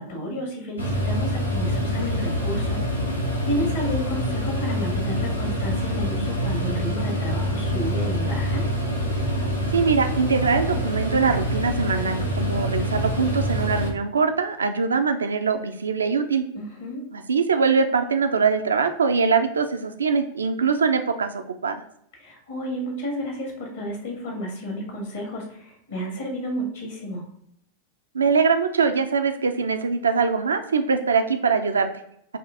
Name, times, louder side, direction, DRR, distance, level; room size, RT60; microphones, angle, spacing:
voice 1, 0.0-8.6 16.5-17.0 22.1-27.3, equal, 60° left, 1 dB, 1.6 m, -31 dB
sound 1, 0.8-13.9, equal, 85° left, 0.8 m, -26 dB
voice 2, 9.7-16.4 17.1-21.7 28.1-31.9, right 5 dB, 70° right, 7 dB, 0.4 m, -22 dB
4.9 x 2.5 x 3.6 m, 0.72 s
figure-of-eight pair, 90°, 0 cm